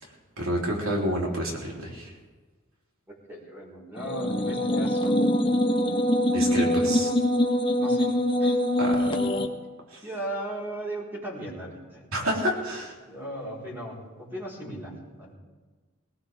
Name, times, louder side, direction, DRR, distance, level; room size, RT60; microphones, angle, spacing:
voice 1, 0.0-2.1 6.3-7.1 8.8-9.1 9.9-10.0 12.1-13.0, equal, 85° right, -2 dB, 3.5 m, -29 dB
voice 2, 3.1-5.3 7.8-8.1 8.4-8.6 9.1-9.2 10.0-12.1 13.0-15.4, right 1 dB, 10° right, -5 dB, 4.4 m, -37 dB
sound 1, 4.0-9.5, left 1 dB, 25° left, 1.0 m, -24 dB
19.5 x 18.0 x 3.6 m, 1.3 s
head